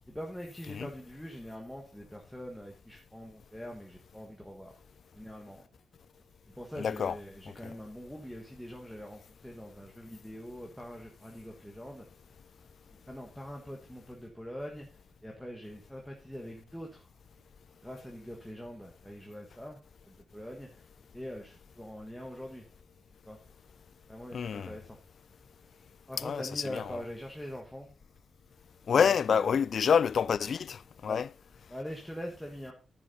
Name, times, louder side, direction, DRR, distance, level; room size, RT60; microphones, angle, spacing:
voice 1, 0.1-4.7 5.1-5.6 6.5-12.1 13.1-17.1 17.8-19.8 20.1-20.8 21.1-22.7 23.2-23.4 24.1-25.0 26.1-27.9 28.9-29.6 31.1-31.2 31.7-32.7, equal, ahead, 1.5 m, -43 dB
voice 2, 6.8-7.2 7.6-7.7 24.3-24.8 26.2-27.0 28.9-31.3, left 7 dB, 60° left, 0.3 m, -28 dB
10.0 x 6.9 x 4.1 m
cardioid pair, 105°, 0 cm